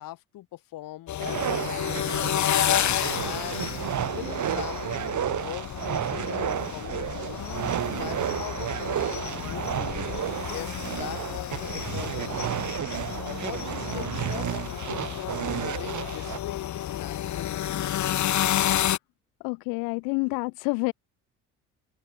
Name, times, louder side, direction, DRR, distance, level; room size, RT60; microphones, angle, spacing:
voice 1, 0.0-2.5 3.2-3.8 4.0-7.5 7.9-10.1 10.5-12.7 13.2-17.7, left 15 dB, 70° left, 3.7 m, -41 dB
sound 1, 1.1-19.0, left 11 dB, 55° left, 1.4 m, -31 dB
sound 2, 1.2-16.4, right 10 dB, 55° right, 5.1 m, -32 dB
voice 2, 19.4-20.9, left 35 dB, 85° left, 2.1 m, -28 dB
open air
supercardioid pair, 70°, 35 cm